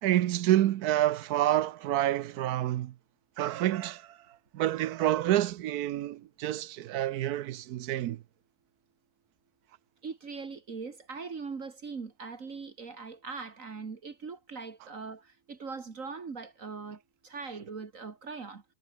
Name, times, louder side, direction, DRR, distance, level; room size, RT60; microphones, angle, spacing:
voice 1, 0.0-2.9 3.4-4.2 4.5-8.2, right 13 dB, 75° right, 1.2 m, -28 dB
voice 2, 10.0-18.6, right 4 dB, 55° right, 2.2 m, -41 dB
omnidirectional pair, 1.7 m